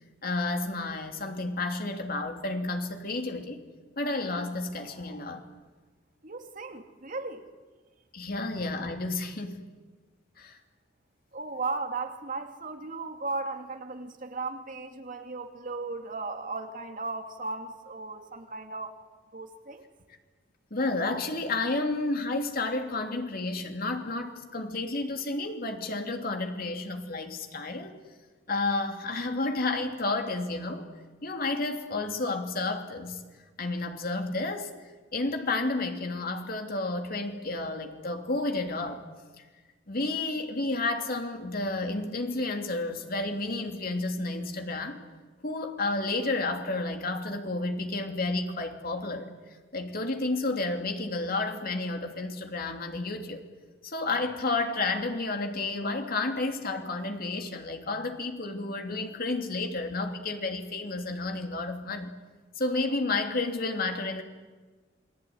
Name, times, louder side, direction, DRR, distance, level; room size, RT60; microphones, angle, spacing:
voice 1, 0.2-3.6 4.0-5.5 8.1-9.6 10.4-10.6 20.7-28.0 28.5-30.9 31.2-33.2 33.6-34.7 35.1-39.0 39.9-45.0 45.4-49.3 49.7-53.4 53.8-62.1 62.6-64.2, left 2 dB, 50° left, 4 dB, 3.0 m, -31 dB
voice 2, 6.2-7.5 11.3-19.0 19.3-19.9, right 3 dB, 45° right, 5 dB, 2.4 m, -36 dB
28.5 x 21.5 x 9.5 m, 1.4 s
head